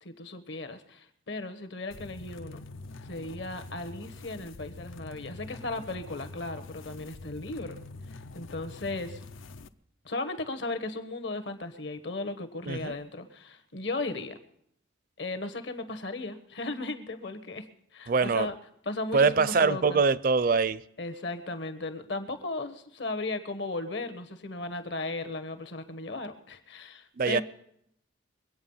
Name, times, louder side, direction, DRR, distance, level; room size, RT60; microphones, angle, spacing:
voice 1, 0.0-2.6 3.0-7.8 8.3-9.2 10.0-14.4 15.2-17.6 17.9-18.5 18.8-20.0 21.0-27.4, left 2 dB, 60° left, 1.2 m, -36 dB
sound 1, 1.9-9.7, left 2 dB, 80° left, 0.6 m, -45 dB
voice 2, 18.1-18.5 19.1-20.8 27.2-27.4, right 4 dB, 45° right, 0.4 m, -23 dB
22.5 x 8.7 x 5.5 m
head